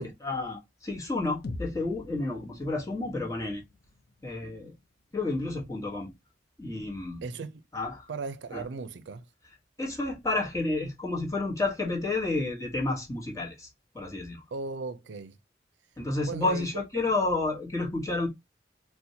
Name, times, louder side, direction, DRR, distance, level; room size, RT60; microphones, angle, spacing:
voice 1, 0.0-3.6 4.2-4.7 5.1-6.1 6.6-7.2 7.7-8.1 8.5-8.6 9.8-13.7 13.9-14.4 16.0-18.3, left 2 dB, 20° left, 1.0 m, -30 dB
sound 1, 1.4-5.4, left 2 dB, 55° left, 0.5 m, -44 dB
voice 2, 7.2-7.6 8.1-9.3 14.5-15.4 16.3-17.1, right 4 dB, 85° right, 0.4 m, -37 dB
4.2 x 2.2 x 2.6 m
head